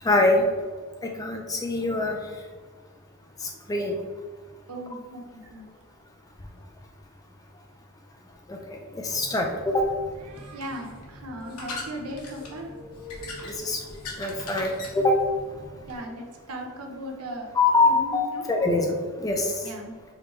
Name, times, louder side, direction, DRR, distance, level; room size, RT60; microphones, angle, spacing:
voice 1, 0.0-0.5 1.0-2.2 3.7-4.0 8.5-8.8 9.0-9.9 13.6-13.8 14.2-15.2 17.6-19.5, left 2 dB, 15° left, 2 dB, 0.3 m, -23 dB
voice 2, 4.7-5.7 10.2-12.8 15.9-17.5 17.8-18.6 19.6-20.0, right 1 dB, 80° right, 1 dB, 0.8 m, -37 dB
sound 1, 9.0-16.0, left 2 dB, 85° left, 1.1 m, -41 dB
4.9 x 3.2 x 3.1 m, 1.6 s
head